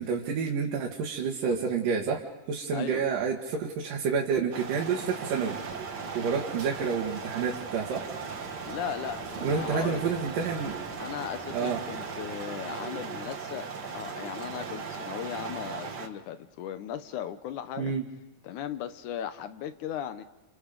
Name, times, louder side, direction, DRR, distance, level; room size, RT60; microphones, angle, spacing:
voice 1, 0.0-2.2 2.5-5.6 6.1-8.1 9.4-10.8 11.5-11.8 17.8-18.0, right 6 dB, 85° right, -2 dB, 3.4 m, -29 dB
voice 2, 2.7-3.1 8.7-10.1 11.0-13.7 13.9-17.9 18.4-20.2, left 9 dB, 75° left, 11 dB, 2.4 m, -37 dB
sound 1, 4.5-16.1, right 5 dB, 45° right, 1.5 m, -38 dB
Ocean, 5.7-12.4, equal, 5° left, 2.6 m, -49 dB
30.0 x 28.0 x 5.2 m, 1.0 s
omnidirectional pair, 3.7 m